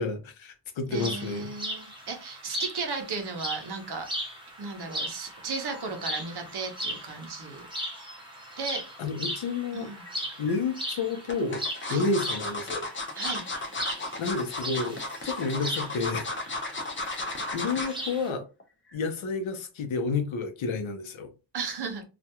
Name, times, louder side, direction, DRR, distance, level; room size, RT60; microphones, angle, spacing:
voice 1, 0.0-1.5 9.0-9.9 10.4-11.6 11.9-12.9 14.2-15.0 15.2-16.2 17.2-18.4 18.9-21.3, left 4 dB, 80° left, 0.7 m, -30 dB
sound 1, 0.9-18.3, equal, 10° right, 0.6 m, -38 dB
voice 2, 0.9-4.3 4.6-7.7 8.6-8.8 9.7-10.0 11.8-12.1 13.2-13.5 21.5-22.0, right 4 dB, 55° right, 0.7 m, -35 dB
sound 2, 10.1-10.6 11.3-18.0 18.4-18.6 18.9-19.0, left 2 dB, 30° left, 0.4 m, -34 dB
2.4 x 2.1 x 2.8 m
wide cardioid pair, 175°, 47 cm